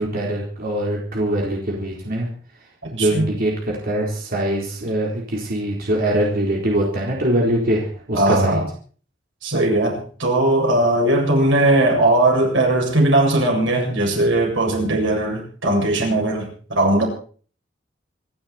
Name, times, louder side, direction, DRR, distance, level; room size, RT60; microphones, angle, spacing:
voice 1, 0.0-2.3 2.9-8.6, right 1 dB, 50° right, -2 dB, 4.1 m, -23 dB
voice 2, 3.0-3.3 8.1-8.7 9.4-17.1, right 1 dB, 90° right, 0 dB, 7.4 m, -19 dB
26.5 x 12.0 x 4.4 m, 0.43 s
head